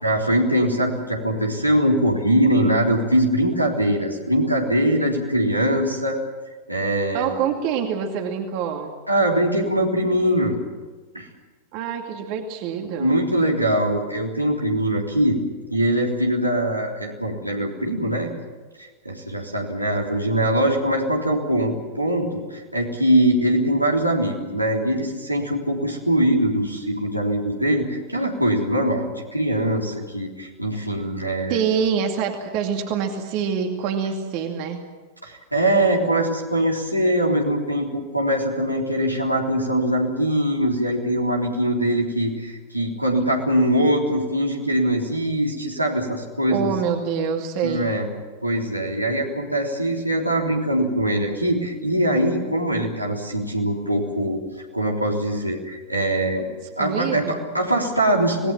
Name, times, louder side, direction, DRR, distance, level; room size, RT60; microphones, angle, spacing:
voice 1, 0.0-6.2 6.7-7.4 9.1-10.6 11.1-11.3 13.0-15.4 15.7-18.3 18.8-31.6 35.2-46.7 47.6-48.1 48.4-54.4 54.7-56.5 56.8-58.5, right 1 dB, 90° right, -1 dB, 3.6 m, -22 dB
voice 2, 7.1-8.9 11.7-13.2 31.5-34.8 46.5-47.9 56.8-57.4, right 7 dB, 45° right, 4 dB, 2.3 m, -25 dB
26.5 x 19.0 x 7.5 m, 1.3 s
figure-of-eight pair, 90°, 0 cm